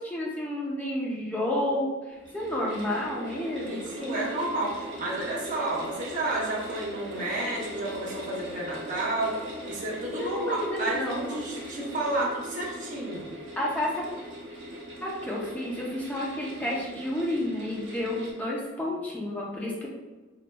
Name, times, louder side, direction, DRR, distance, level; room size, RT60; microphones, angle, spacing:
voice 1, 0.0-4.2 10.0-11.4 13.6-14.0 15.0-19.9, left 1 dB, 10° left, -4 dB, 0.6 m, -31 dB
sound 1, 2.1-18.3, equal, 75° right, 0.9 m, -40 dB
voice 2, 3.6-9.4 9.6-13.3, right 2 dB, 45° right, -4 dB, 0.8 m, -31 dB
3.1 x 2.8 x 2.2 m, 1.2 s
head